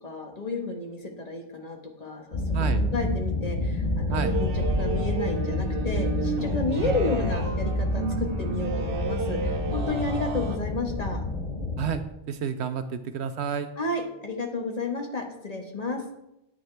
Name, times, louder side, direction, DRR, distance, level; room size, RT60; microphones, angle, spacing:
voice 1, 0.0-11.2 13.8-16.1, left 2 dB, 35° left, 2 dB, 1.4 m, -32 dB
sound 1, 2.3-11.9, left 1 dB, 80° left, 2.7 m, -28 dB
sound 2, 4.1-10.6, right 4 dB, 55° right, 1.0 m, -33 dB
voice 2, 11.8-13.7, right 7 dB, 70° right, 10 dB, 0.9 m, -30 dB
10.0 x 9.3 x 3.3 m, 0.87 s
omnidirectional pair, 1.2 m